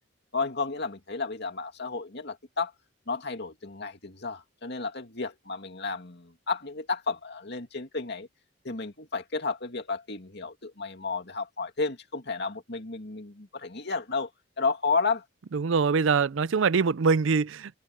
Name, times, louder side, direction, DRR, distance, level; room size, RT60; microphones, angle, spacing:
voice 1, 0.3-2.7 3.1-8.3 8.6-14.3 14.6-15.2, left 4 dB, 55° left, 2.5 m, -32 dB
voice 2, 15.5-17.8, right 5 dB, 65° right, 0.5 m, -24 dB
head